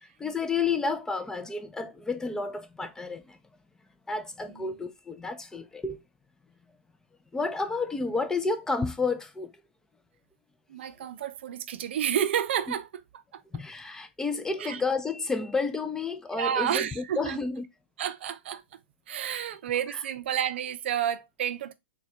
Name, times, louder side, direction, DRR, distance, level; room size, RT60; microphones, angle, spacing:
voice 1, 0.0-3.4 4.1-6.0 7.3-9.5 13.5-17.6 19.9-20.0, left 4 dB, 10° left, 0.4 m, -31 dB
voice 2, 10.7-12.9 13.3-13.4 14.6-14.8 16.3-17.4 18.0-18.6 19.1-21.7, right 10 dB, 65° right, 0.4 m, -30 dB
4.1 x 2.2 x 2.7 m
hypercardioid pair, 115°, 7 cm